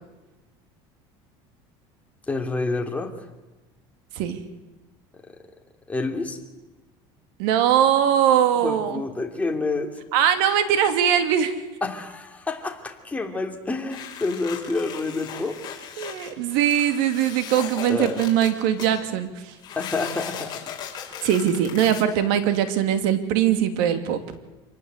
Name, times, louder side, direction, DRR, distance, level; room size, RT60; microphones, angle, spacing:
voice 1, 2.3-3.1 5.9-6.4 8.6-10.0 11.8-15.6 17.9-18.2 19.8-20.7 21.2-21.3, left 3 dB, 10° left, 3 dB, 2.9 m, -28 dB
voice 2, 7.4-9.0 10.1-11.5 16.0-19.6 21.2-24.2, right 9 dB, 80° right, 9 dB, 2.8 m, -21 dB
sound 1, 13.9-19.0 19.6-22.0, left 8 dB, 35° left, 5.7 m, -37 dB
27.5 x 19.0 x 8.3 m, 1.1 s
cardioid pair, 140°, 12 cm